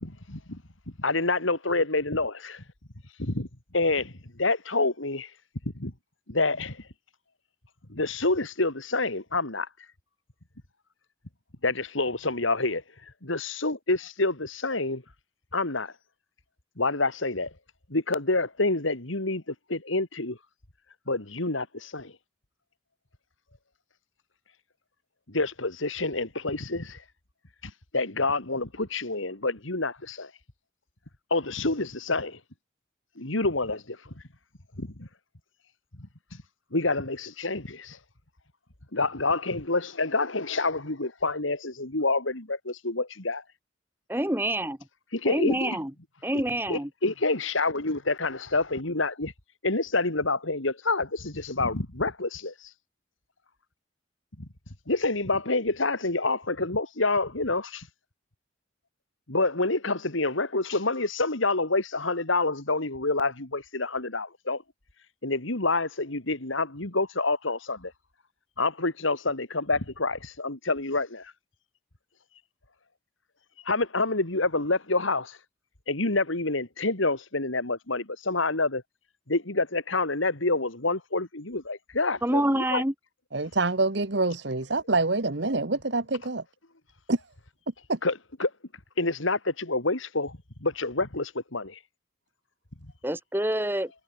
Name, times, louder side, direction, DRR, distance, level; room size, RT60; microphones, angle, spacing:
voice 1, 0.0-0.6 1.0-2.6 3.2-3.5 3.7-5.3 5.7-5.9 6.3-6.8 7.9-9.7 11.6-12.8 13.2-15.0 15.5-15.9 16.8-17.5 17.9-20.4 21.1-22.1 25.3-27.0 27.6-30.3 31.3-32.4 33.2-34.1 34.8-35.1 36.7-38.0 38.9-43.4 45.1-45.8 46.3-46.4 46.7-49.3 49.6-52.7 54.4-54.5 54.9-57.9 59.3-64.6 65.2-67.9 68.6-71.3 73.6-75.4 75.9-78.8 79.3-82.8 88.0-88.1 88.4-88.5 89.0-91.8 92.8-92.9, left 3 dB, 80° left, 3.1 m, -28 dB
voice 2, 44.1-44.8 45.3-45.9 46.2-46.9 82.2-82.9 93.0-93.9, right 1 dB, 10° right, 1.9 m, -27 dB
voice 3, 83.3-86.4 87.1-87.2 87.9-88.0, right 3 dB, 60° right, 1.3 m, -26 dB
head